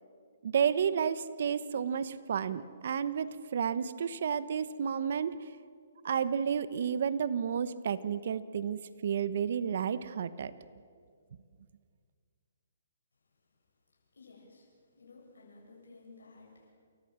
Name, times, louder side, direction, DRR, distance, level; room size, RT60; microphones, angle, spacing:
voice 1, 0.4-5.4 6.0-10.5, right 7 dB, 60° right, 14 dB, 1.0 m, -31 dB
voice 2, 14.1-14.7 14.9-16.7, left 3 dB, 85° left, -2 dB, 7.5 m, -55 dB
29.0 x 14.0 x 7.6 m, 2.1 s
hypercardioid pair, 150°, 0 cm